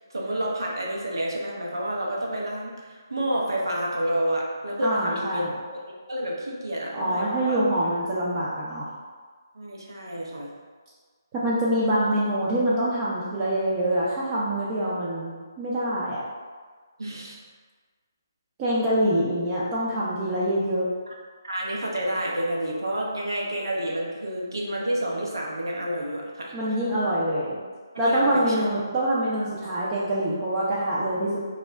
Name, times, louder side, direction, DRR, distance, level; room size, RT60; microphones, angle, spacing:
voice 1, 0.1-5.8 6.1-7.6 9.5-10.5 17.0-17.4 21.1-21.2 21.4-26.8 27.9-28.6, right 1 dB, 85° right, -2 dB, 0.6 m, -29 dB
voice 2, 4.8-5.5 6.9-8.9 11.3-15.3 15.6-16.2 18.6-20.9 26.5-27.6 28.0-31.4, right 1 dB, 20° right, -7 dB, 0.4 m, -25 dB
2.3 x 2.0 x 3.3 m, 1.5 s
figure-of-eight pair, 150°, 2 cm